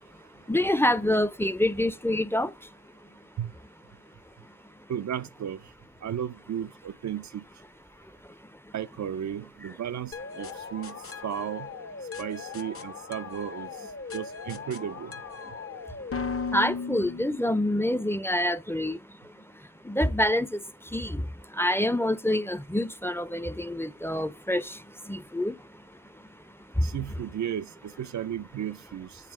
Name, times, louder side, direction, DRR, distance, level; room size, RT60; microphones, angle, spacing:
voice 1, 0.5-2.7 8.6-8.7 16.5-25.8 26.8-27.1, left 1 dB, 10° left, 0.5 m, -27 dB
voice 2, 4.9-5.6 6.0-7.4 8.7-11.0 11.2-11.7 12.2-13.7 14.1-15.1 26.8-29.1, right 9 dB, 70° right, 0.5 m, -34 dB
sound 1, 10.1-17.9, left 5 dB, 50° left, 0.8 m, -37 dB
8.3 x 3.4 x 6.0 m
cardioid pair, 40°, 30 cm